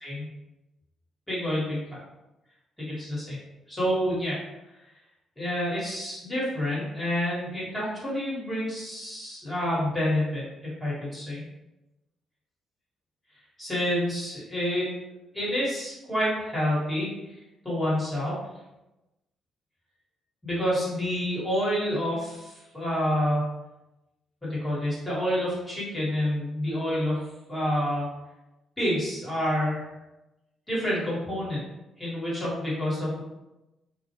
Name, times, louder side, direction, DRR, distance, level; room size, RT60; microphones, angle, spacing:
voice 1, 1.3-2.0 2.8-3.4 3.7-4.4 5.4-11.4 13.6-14.9 15.3-17.4 17.6-18.4 20.4-23.5 24.4-28.1 28.8-29.9 30.7-31.6 32.0-33.2, equal, 15° left, -7 dB, 1.3 m, -28 dB
2.3 x 2.2 x 2.9 m, 0.97 s
cardioid pair, 90°, 0 cm